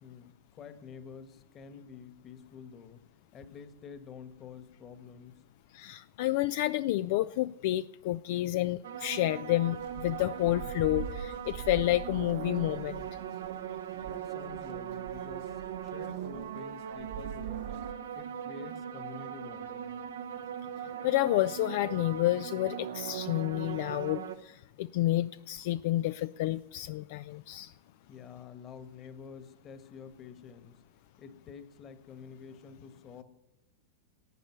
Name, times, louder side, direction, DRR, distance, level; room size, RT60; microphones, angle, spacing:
voice 1, 0.0-3.1 3.3-5.4 14.0-15.6 15.8-17.8 18.1-19.9 28.1-30.8 31.2-33.2, left 6 dB, 35° left, 10 dB, 1.5 m, -48 dB
voice 2, 5.7-13.1 21.0-27.7, left 15 dB, 60° left, 13 dB, 0.4 m, -30 dB
sound 1, 8.8-24.4, right 9 dB, 80° right, 1.0 m, -40 dB
sound 2, 9.8-17.9, right 7 dB, 65° right, 1.3 m, -45 dB
12.0 x 8.5 x 9.4 m, 0.93 s
hypercardioid pair, 115°, 0 cm